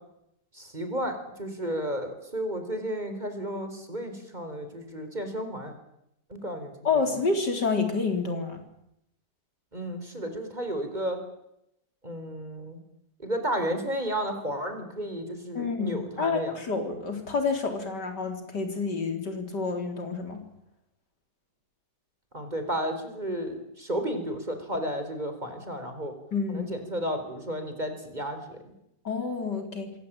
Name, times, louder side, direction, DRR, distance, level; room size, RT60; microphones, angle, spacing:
voice 1, 0.5-5.7 6.3-6.7 9.7-11.2 12.0-12.8 13.2-16.6 22.3-26.1 26.5-28.7, equal, 25° right, 7 dB, 4.7 m, -32 dB
voice 2, 6.8-8.6 15.5-20.4 26.3-26.7 29.0-29.9, left 4 dB, 85° left, 6 dB, 4.5 m, -29 dB
27.5 x 22.0 x 9.0 m, 0.82 s
omnidirectional pair, 1.8 m